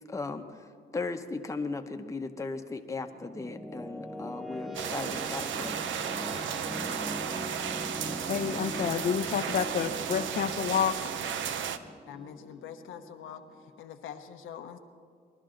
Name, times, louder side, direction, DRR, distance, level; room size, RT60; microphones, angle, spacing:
voice 1, 0.1-0.6 0.9-5.9, left 3 dB, 15° left, 5 dB, 0.9 m, -37 dB
sound 1, 2.9-13.8, left 1 dB, ahead, 0.4 m, -42 dB
sound 2, 4.7-11.8, right 8 dB, 70° right, 0.7 m, -34 dB
voice 2, 8.3-11.0, left 8 dB, 50° left, 5 dB, 0.6 m, -29 dB
voice 3, 12.0-14.8, left 8 dB, 80° left, 6 dB, 0.9 m, -44 dB
21.0 x 11.5 x 3.8 m, 2.1 s
cardioid pair, 90°, 20 cm